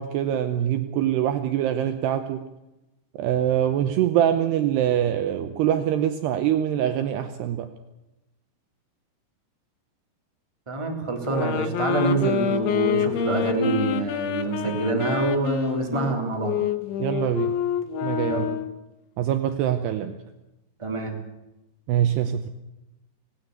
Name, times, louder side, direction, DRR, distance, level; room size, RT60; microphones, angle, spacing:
voice 1, 0.0-2.4 3.2-7.7 17.0-17.5 18.0-18.5 19.2-20.2 21.9-22.5, right 10 dB, 75° right, 9 dB, 2.6 m, -24 dB
voice 2, 10.7-16.6 18.2-18.5 20.8-21.2, right 3 dB, 10° right, 2 dB, 2.5 m, -26 dB
sound 1, 11.2-18.8, left 9 dB, 80° left, 3.5 m, -27 dB
19.0 x 18.0 x 8.1 m, 0.96 s
omnidirectional pair, 5.5 m